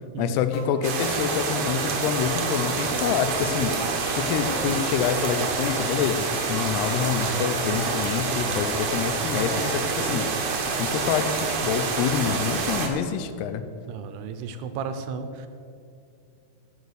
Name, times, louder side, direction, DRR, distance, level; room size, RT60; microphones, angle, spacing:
voice 1, 0.2-3.7 4.1-10.3 10.8-13.6, left 8 dB, 80° left, 11 dB, 2.7 m, -27 dB
sound 1, 0.5-0.7 1.0-2.1 2.4-5.7 6.0-6.1 6.4-8.5, left 2 dB, 55° left, 1.4 m, -38 dB
sound 2, 0.8-12.9, right 4 dB, 60° right, 2.0 m, -27 dB
voice 2, 13.9-15.5, right 6 dB, 80° right, 9 dB, 2.7 m, -33 dB
16.0 x 6.7 x 6.6 m, 2.5 s
omnidirectional pair, 4.8 m